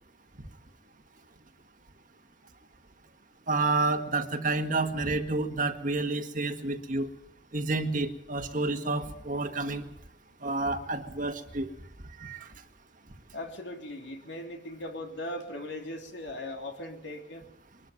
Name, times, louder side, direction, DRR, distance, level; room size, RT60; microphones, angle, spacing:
voice 1, 3.5-7.1 7.5-9.9 10.4-11.7 12.2-12.5, right 3 dB, 45° right, 6 dB, 1.7 m, -29 dB
voice 2, 13.3-17.4, left 1 dB, 70° left, 3 dB, 3.3 m, -39 dB
22.5 x 13.5 x 9.5 m, 0.83 s
head